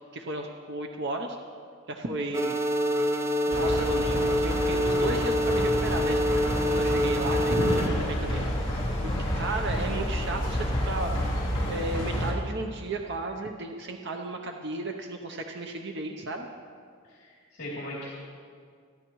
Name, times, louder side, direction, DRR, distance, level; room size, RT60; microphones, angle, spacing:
voice 1, 0.1-1.4 1.9-2.6 3.4-6.2 6.7-8.4 9.0-11.1 11.7-16.5, right 2 dB, 55° right, 3 dB, 0.8 m, -34 dB
sound 1, 2.3-7.9, equal, 15° right, 0.6 m, -26 dB
sound 2, 3.5-12.3, equal, 20° left, 3.0 m, -29 dB
voice 2, 7.4-8.0 17.6-18.1, equal, 55° left, -7 dB, 3.1 m, -31 dB
28.5 x 10.5 x 3.1 m, 2.2 s
head